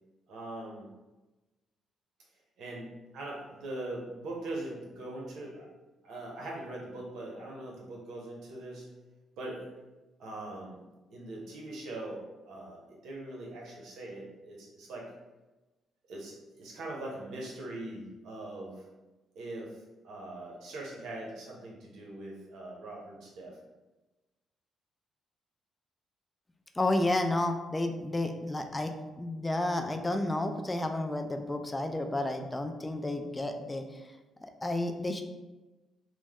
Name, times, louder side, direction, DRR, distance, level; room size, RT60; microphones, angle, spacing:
voice 1, 0.3-0.9 2.6-5.7 6.0-8.9 9.4-9.7 10.2-10.8 11.1-15.2 16.1-18.9 19.3-19.8 20.0-23.6, right 1 dB, 75° right, -2 dB, 0.8 m, -41 dB
voice 2, 26.8-28.9 29.2-33.8 34.6-35.2, left 1 dB, 15° left, 5 dB, 0.3 m, -31 dB
3.0 x 2.1 x 3.5 m, 1.1 s
cardioid pair, 90°, 0 cm